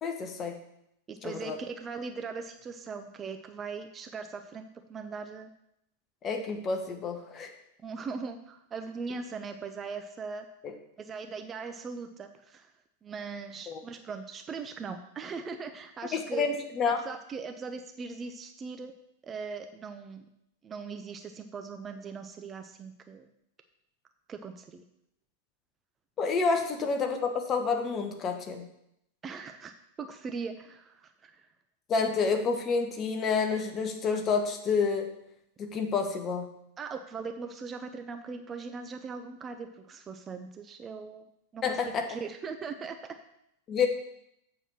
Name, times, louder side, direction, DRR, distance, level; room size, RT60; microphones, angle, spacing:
voice 1, 0.0-0.6 1.2-1.6 6.2-7.5 13.7-13.8 16.1-17.0 26.2-28.6 31.9-35.1 35.6-36.5 41.6-42.1 43.7-43.9, left 5 dB, 25° left, 5 dB, 1.1 m, -29 dB
voice 2, 1.1-5.5 7.8-10.4 11.0-12.7 13.0-16.5 16.9-18.9 19.2-20.3 20.6-23.3 24.3-24.8 29.2-29.7 30.0-31.5 36.8-41.6 42.1-43.2, right 5 dB, 20° right, 7 dB, 0.5 m, -40 dB
7.8 x 4.5 x 6.0 m, 0.78 s
figure-of-eight pair, 90°, 0 cm